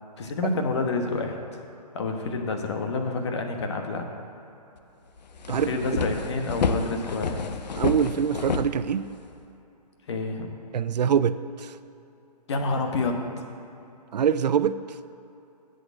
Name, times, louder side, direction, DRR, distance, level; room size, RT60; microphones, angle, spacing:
voice 1, 0.2-1.6 1.9-4.1 5.5-7.6 10.1-10.5 12.5-13.2, left 3 dB, 40° left, 4 dB, 1.3 m, -28 dB
sound 1, 4.8-4.9 5.2-9.4, left 4 dB, 85° left, 0.8 m, -29 dB
voice 2, 7.8-9.1 10.7-11.8 14.1-14.8, right 8 dB, 80° right, 13 dB, 0.5 m, -24 dB
8.1 x 7.8 x 7.4 m, 2.9 s
hypercardioid pair, 170°, 21 cm